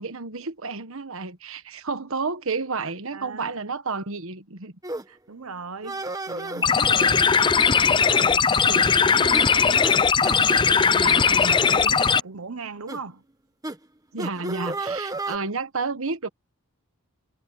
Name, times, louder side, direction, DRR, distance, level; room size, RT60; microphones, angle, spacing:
voice 1, 0.0-4.7 10.9-11.6 14.1-16.3, right 4 dB, 65° right, 1.3 m, -31 dB
voice 2, 3.1-3.5 5.1-9.9 10.2-13.2, right 4 dB, 90° right, 1.1 m, -38 dB
sound 1, 4.8-5.0 5.8-6.7 7.6-8.0 8.3-8.4 8.8-9.0 9.3-9.5 9.8-10.0 10.2-10.4 11.1-11.3 11.8-12.0 12.9-13.0 13.6-13.8 14.2-15.4, right 2 dB, 15° right, 1.3 m, -33 dB
sound 2, 6.6-12.2, left 6 dB, 20° left, 0.4 m, -19 dB
head